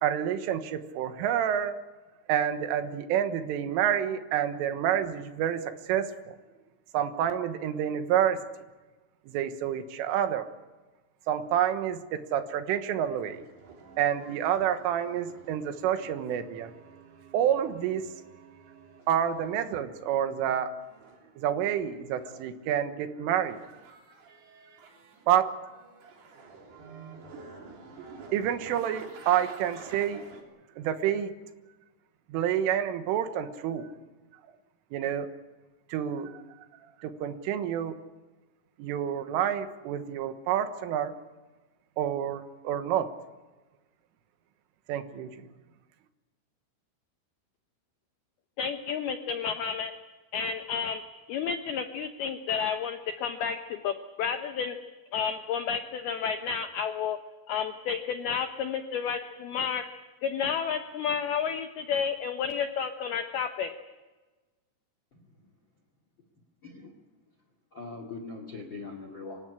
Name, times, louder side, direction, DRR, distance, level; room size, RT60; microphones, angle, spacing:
voice 1, 0.0-1.8 2.3-6.4 6.9-8.5 9.3-10.5 11.3-13.4 14.0-16.7 17.3-18.1 19.1-20.7 21.4-23.6 25.3-25.5 28.3-30.3 30.8-31.3 32.3-33.9 34.9-35.3 35.9-36.4 37.0-38.0 38.8-41.1 42.0-43.1 44.9-45.4, right 10 dB, 85° right, 9 dB, 3.8 m, -28 dB
sound 1, 13.1-19.8 20.8-22.8 23.3-25.3 25.6-30.4, right 4 dB, 55° right, 5.1 m, -50 dB
voice 2, 48.6-49.9 50.3-51.0 51.3-54.8 55.1-57.2 57.5-59.8 60.2-63.7, left 7 dB, 80° left, 7 dB, 2.3 m, -31 dB
voice 3, 66.6-67.0 67.7-69.4, left 3 dB, 45° left, 6 dB, 1.6 m, -41 dB
25.5 x 16.0 x 9.9 m, 1.2 s
omnidirectional pair, 5.8 m